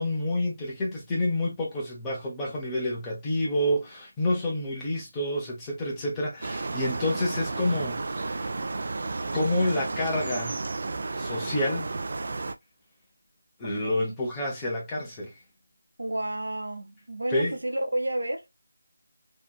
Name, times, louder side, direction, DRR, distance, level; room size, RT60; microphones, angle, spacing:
voice 1, 0.0-8.5 9.3-10.6 11.2-11.9 13.6-15.3 17.3-17.6, left 1 dB, 10° left, 0.8 m, -28 dB
sound 1, 6.4-12.5, right 3 dB, 50° right, 0.4 m, -32 dB
voice 2, 13.6-14.2 16.0-18.5, right 1 dB, 75° right, 0.9 m, -31 dB
2.9 x 2.6 x 2.2 m
figure-of-eight pair, 165°, 0 cm